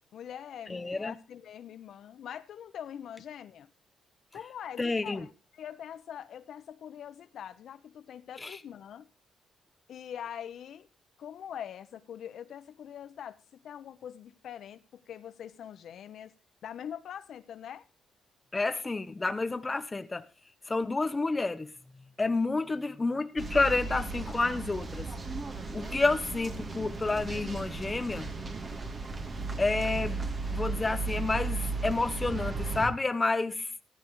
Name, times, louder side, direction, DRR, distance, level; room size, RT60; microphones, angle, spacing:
voice 1, 0.1-3.7 4.3-9.1 9.9-10.9 11.2-13.4 13.6-16.3 16.6-17.9, left 9 dB, 65° left, 1.0 m, -43 dB
voice 2, 0.7-1.1 4.8-5.2 8.4-8.6 18.5-20.2 20.7-21.7 22.2-25.1 25.7-28.3 29.6-30.2 30.5-33.7, left 3 dB, 20° left, 1.0 m, -29 dB
sound 1, 23.4-32.9, right 3 dB, 35° right, 2.9 m, -35 dB
14.5 x 14.0 x 3.2 m
cardioid pair, 90°, 0 cm